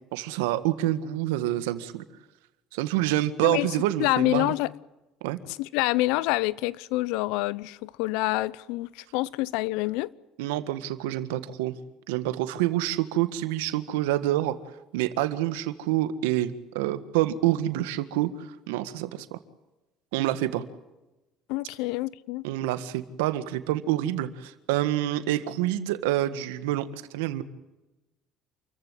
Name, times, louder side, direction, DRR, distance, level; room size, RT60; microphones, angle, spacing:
voice 1, 0.1-2.0 2.7-4.5 5.2-5.4 10.4-11.7 12.1-14.6 14.9-19.4 20.1-20.6 22.4-27.4, right 14 dB, 90° right, 1.7 m, -27 dB
voice 2, 4.0-4.7 5.6-10.1 21.5-22.5, left 19 dB, 80° left, 0.8 m, -27 dB
28.5 x 15.0 x 9.7 m
supercardioid pair, 85°, 0 cm